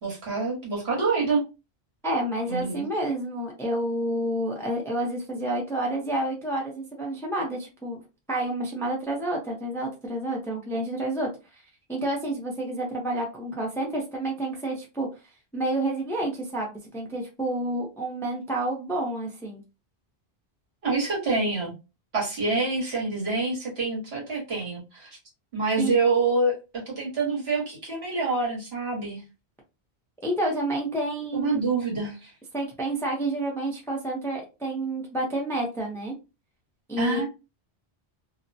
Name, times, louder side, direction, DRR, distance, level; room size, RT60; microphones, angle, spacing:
voice 1, 0.0-1.4 2.4-2.9 20.8-21.7 22.1-25.2 25.5-29.2 31.3-32.3 37.0-37.3, right 3 dB, 75° right, -4 dB, 1.6 m, -26 dB
voice 2, 2.0-8.0 8.3-11.6 11.9-15.1 15.5-19.6 25.8-25.9 30.2-31.6 32.5-36.1 36.9-37.2, right 1 dB, 5° left, 0 dB, 0.5 m, -29 dB
2.8 x 2.1 x 2.6 m, 0.28 s
omnidirectional pair, 1.1 m